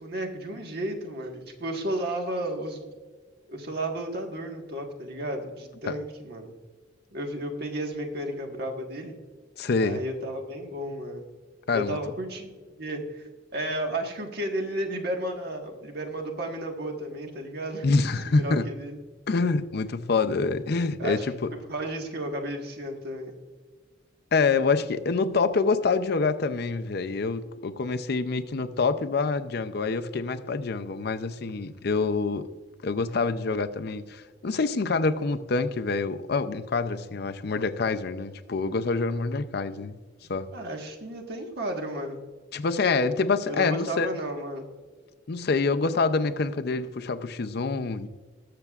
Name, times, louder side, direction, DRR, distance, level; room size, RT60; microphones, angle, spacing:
voice 1, 0.0-2.8 3.5-6.5 7.1-9.2 9.8-11.2 11.7-12.5 12.8-17.9 18.3-19.0 21.0-21.2 21.7-23.3 40.5-42.2 43.5-44.6, right 1 dB, 55° right, 1.5 m, -33 dB
voice 2, 9.6-10.0 11.7-12.0 17.8-18.7 19.3-21.5 24.3-32.5 32.8-40.0 40.3-40.5 42.5-44.1 45.3-48.1, left 4 dB, 55° left, 0.5 m, -26 dB
20.0 x 6.8 x 2.4 m
head